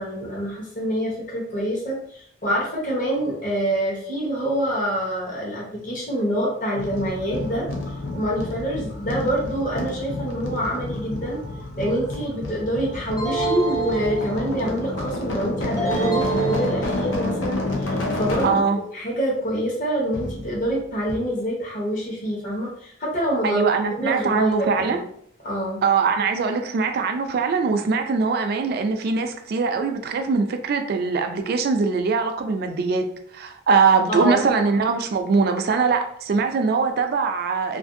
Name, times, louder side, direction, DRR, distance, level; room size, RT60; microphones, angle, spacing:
voice 1, 0.0-7.7 8.1-11.4 11.8-18.6 18.9-23.6 24.0-25.0 25.4-25.8 34.1-34.4, equal, 45° left, -3 dB, 0.9 m, -26 dB
sound 1, 6.7-18.7 20.1-20.8 21.1-21.2, left 2 dB, 80° left, 0.6 m, -29 dB
sound 2, 13.2-14.7 15.8-17.3, right 4 dB, 20° left, 0.7 m, -26 dB
voice 2, 18.4-18.8 23.4-25.0 25.8-33.1 33.3-37.8, right 5 dB, 55° right, 7 dB, 0.3 m, -22 dB
2.6 x 2.5 x 2.5 m, 0.66 s
head